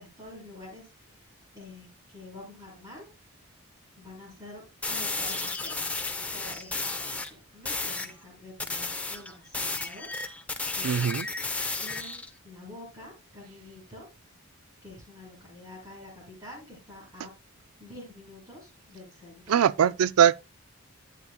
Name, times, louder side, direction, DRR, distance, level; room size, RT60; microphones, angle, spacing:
voice 1, 0.0-3.0 4.0-4.6 4.9-10.1 10.7-14.1 14.8-17.3 17.8-19.6, left 1 dB, 20° right, 6.3 m, -47 dB
sound 1, 4.8-7.3 7.7-8.1 8.6-12.3, left 3 dB, 5° left, 0.7 m, -33 dB
voice 2, 10.8-11.3 19.5-20.4, right 8 dB, 80° right, 0.4 m, -21 dB
12.0 x 8.5 x 2.2 m
head